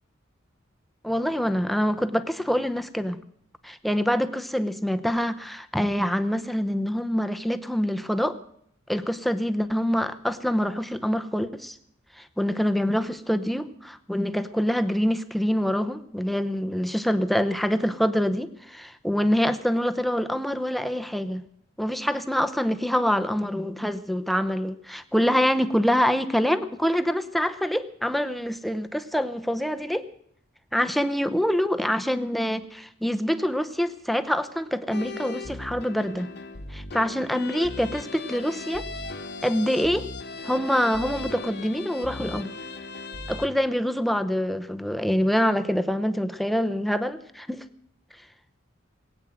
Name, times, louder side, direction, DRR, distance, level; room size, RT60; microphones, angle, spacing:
voice 1, 1.0-3.2 3.6-8.4 8.9-11.8 12.2-21.4 21.8-30.0 30.7-36.3 36.7-38.8 39.4-40.1 40.4-42.5 43.3-47.6, equal, ahead, 9 dB, 0.8 m, -25 dB
sound 1, 34.9-43.5, left 3 dB, 55° left, 1.3 m, -37 dB
20.5 x 9.1 x 7.7 m, 0.68 s
head